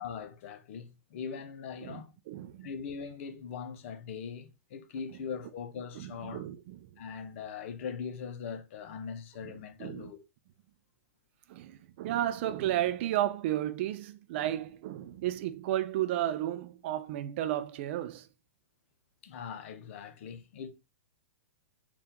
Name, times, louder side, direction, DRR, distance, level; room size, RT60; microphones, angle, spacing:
voice 1, 0.0-2.1 2.6-6.5 7.0-10.2 19.2-20.7, left 6 dB, 55° left, 0.7 m, -41 dB
voice 2, 2.3-2.7 5.9-6.8 9.4-9.5 9.8-10.1 11.5-18.3, right 13 dB, 50° right, 0.4 m, -33 dB
4.1 x 2.4 x 3.7 m
hypercardioid pair, 110°, 8 cm